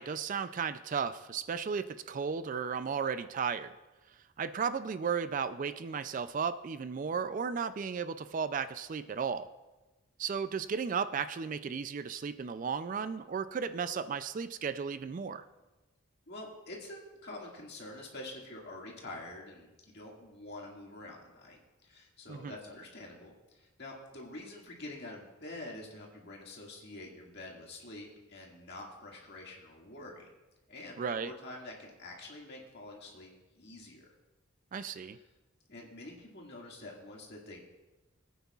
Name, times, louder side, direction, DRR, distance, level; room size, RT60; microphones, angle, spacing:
voice 1, 0.0-3.7 4.4-9.5 10.2-15.4 22.3-22.6 31.0-31.3 34.7-35.2, right 6 dB, 40° right, 12 dB, 0.3 m, -34 dB
voice 2, 16.3-30.3 30.7-33.3 33.6-34.1 35.1-35.2 35.7-37.6, left 2 dB, 55° left, -1 dB, 2.0 m, -47 dB
20.0 x 9.3 x 2.4 m, 1.1 s
head